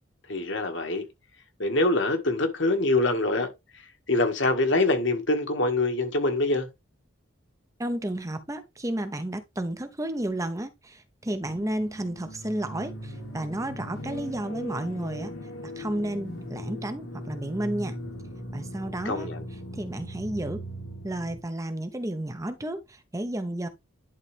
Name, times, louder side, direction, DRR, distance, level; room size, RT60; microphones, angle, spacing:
voice 1, 0.3-1.1 1.6-3.5 4.1-6.7 19.1-19.4, left 2 dB, 65° left, 1.9 m, -24 dB
voice 2, 7.8-15.3 15.6-18.0 18.5-19.3 19.7-20.6 21.0-23.7, right 1 dB, 15° right, 0.8 m, -32 dB
sound 1, 11.4-21.4, equal, 80° left, 3.0 m, -39 dB
11.0 x 4.1 x 3.4 m
head